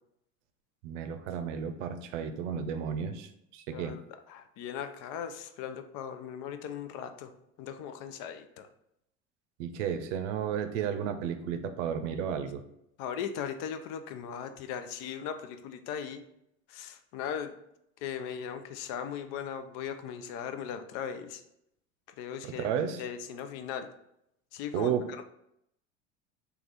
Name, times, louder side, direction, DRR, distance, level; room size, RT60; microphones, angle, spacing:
voice 1, 0.8-4.0 9.6-12.6 22.4-23.0 24.7-25.2, right 8 dB, 75° right, 9 dB, 0.6 m, -33 dB
voice 2, 3.7-4.0 4.3-7.3 7.6-8.7 13.0-16.2 16.7-17.6 18.0-21.4 22.2-22.7 23.0-23.9 24.5-25.2, left 8 dB, 60° left, 9 dB, 0.5 m, -38 dB
3.2 x 2.4 x 3.9 m, 0.78 s
supercardioid pair, 90°, 36 cm